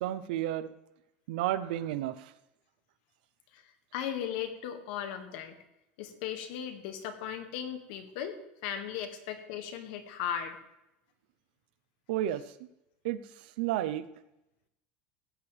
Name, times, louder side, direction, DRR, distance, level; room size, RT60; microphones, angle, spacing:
voice 1, 0.0-0.7 1.3-2.3 12.1-12.7 13.0-14.1, right 13 dB, 80° right, 14 dB, 0.8 m, -32 dB
voice 2, 3.5-5.6 6.0-10.6, left 9 dB, 70° left, 7 dB, 1.9 m, -37 dB
16.0 x 9.9 x 3.4 m, 0.88 s
supercardioid pair, 150°, 5 cm